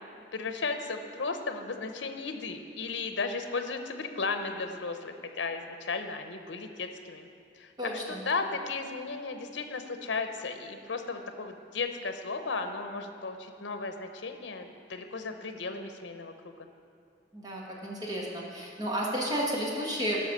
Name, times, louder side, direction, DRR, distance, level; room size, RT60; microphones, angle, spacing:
voice 1, 0.3-7.3 7.6-16.5, left 4 dB, 75° left, 7 dB, 0.8 m, -35 dB
voice 2, 7.8-8.2 17.3-20.2, equal, 20° right, -3 dB, 1.8 m, -32 dB
12.5 x 5.6 x 6.7 m, 2.3 s
head